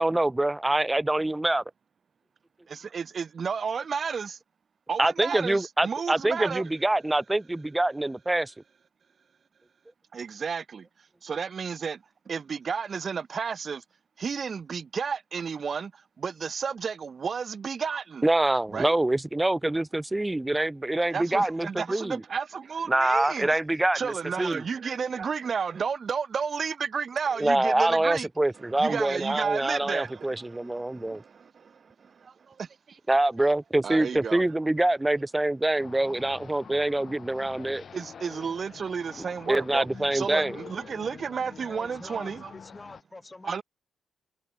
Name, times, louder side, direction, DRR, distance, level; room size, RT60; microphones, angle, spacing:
voice 1, 0.0-1.6 5.0-8.5 18.2-22.2 22.9-24.6 27.4-31.2 33.1-37.8 39.5-40.6, right 1 dB, 10° right, 0.6 m, -25 dB
voice 2, 2.7-4.4 4.9-6.6 10.1-10.9 11.2-12.0 12.3-13.8 14.2-15.9 16.2-18.3 18.7-18.9 21.1-23.6 23.9-28.3 28.8-31.7 32.2-33.0 33.8-34.4 37.9-39.9 40.1-42.5 43.4-43.6, right 6 dB, 45° right, 1.0 m, -32 dB
sound 1, 35.8-43.0, left 6 dB, 45° left, 2.0 m, -46 dB
voice 3, 41.6-43.6, left 2 dB, 20° left, 3.1 m, -46 dB
cardioid pair, 90°, 0 cm